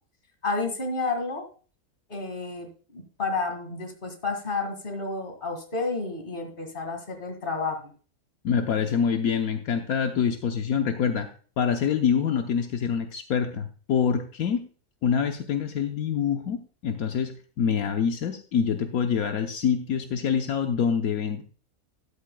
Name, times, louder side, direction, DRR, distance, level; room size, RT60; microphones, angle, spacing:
voice 1, 0.4-1.5 2.1-2.7 2.9-7.9, left 3 dB, 35° left, 4 dB, 2.2 m, -30 dB
voice 2, 8.4-11.3 11.6-14.7 15.0-21.4, left 7 dB, 80° left, 5 dB, 1.3 m, -26 dB
13.0 x 11.5 x 2.2 m, 0.40 s
omnidirectional pair, 1.5 m